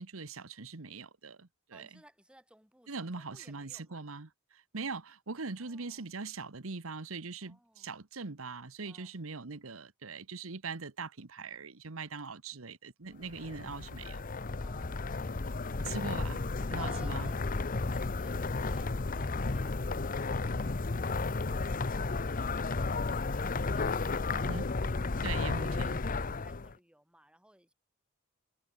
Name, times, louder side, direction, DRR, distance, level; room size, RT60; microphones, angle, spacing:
voice 1, 0.0-2.0 2.9-14.2 15.8-16.4 16.7-17.3 24.4-24.7 25.2-26.0, right 4 dB, 80° right, 1.3 m, -41 dB
voice 2, 1.7-4.1 5.6-6.1 7.4-8.0 8.8-9.2 14.6-15.3 16.8-17.4 17.6-20.7 20.9-24.9 25.3-27.7, right 1 dB, 5° right, 7.8 m, -60 dB
sound 1, 13.2-26.7, left 3 dB, 40° left, 0.8 m, -33 dB
head